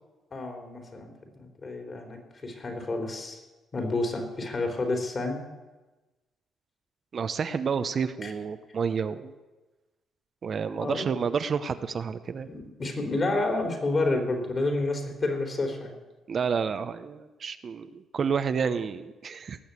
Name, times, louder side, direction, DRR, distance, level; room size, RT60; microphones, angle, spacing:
voice 1, 0.3-1.1 1.4-3.4 3.7-5.4 8.2-8.3 10.8-11.2 12.5-15.9, left 2 dB, 40° left, 3 dB, 3.7 m, -29 dB
voice 2, 7.1-9.3 10.4-12.5 16.3-19.6, right 6 dB, 50° right, 10 dB, 0.8 m, -30 dB
18.5 x 7.1 x 8.3 m, 1.2 s
cardioid pair, 90°, 0 cm